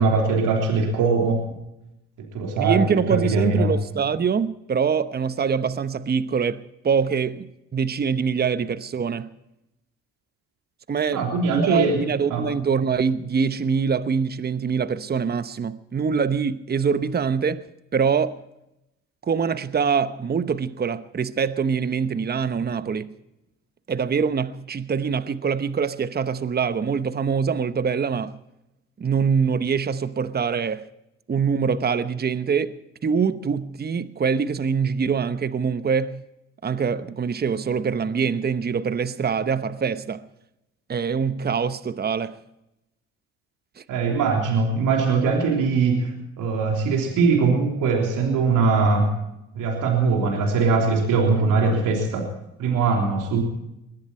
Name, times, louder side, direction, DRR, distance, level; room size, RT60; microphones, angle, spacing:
voice 1, 0.0-1.5 2.2-3.7 11.1-12.0 12.3-12.5 43.9-49.2 49.5-52.3 52.6-53.4, right 4 dB, 70° right, 3.5 m, -21 dB
voice 2, 2.6-7.5 7.7-9.3 10.9-17.6 17.9-18.4 19.2-23.1 23.9-28.4 29.0-30.9 31.3-32.7 33.0-36.2 36.6-40.2 40.9-42.4 43.8-43.9, right 6 dB, 30° right, 1.0 m, -24 dB
21.5 x 14.5 x 4.4 m
supercardioid pair, 65°, 33 cm